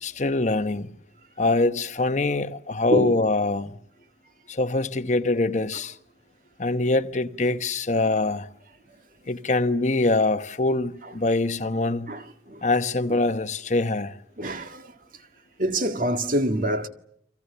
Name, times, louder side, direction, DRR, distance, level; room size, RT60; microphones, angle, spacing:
voice 1, 0.0-0.9 1.4-3.8 4.5-6.0 6.6-8.5 9.3-12.1 12.6-14.1, left 2 dB, 40° left, 1.1 m, -24 dB
voice 2, 12.1-12.6 13.1-13.2 14.4-14.9 15.6-16.9, right 1 dB, 50° right, 1.9 m, -26 dB
30.0 x 25.5 x 6.9 m
head